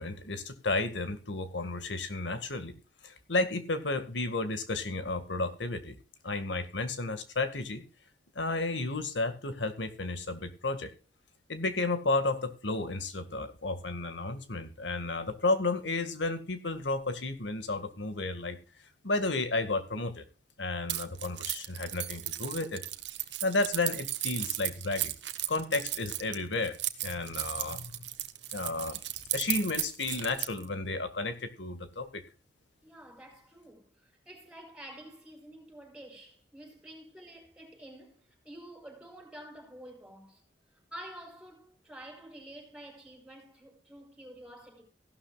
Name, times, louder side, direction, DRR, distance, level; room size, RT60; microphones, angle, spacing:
voice 1, 0.0-2.7 3.0-6.0 6.2-7.8 8.4-10.9 11.5-18.6 19.0-20.2 20.6-22.8 23.4-25.1 25.5-26.8 27.0-28.0 28.5-29.0 29.3-32.2, left 2 dB, 85° left, 1.9 m, -32 dB
Keys jangling, 20.9-30.7, right 15 dB, 70° right, 1.1 m, -35 dB
voice 2, 32.8-40.4 40.9-44.8, right 1 dB, 5° right, 5.0 m, -49 dB
16.0 x 12.0 x 2.4 m
head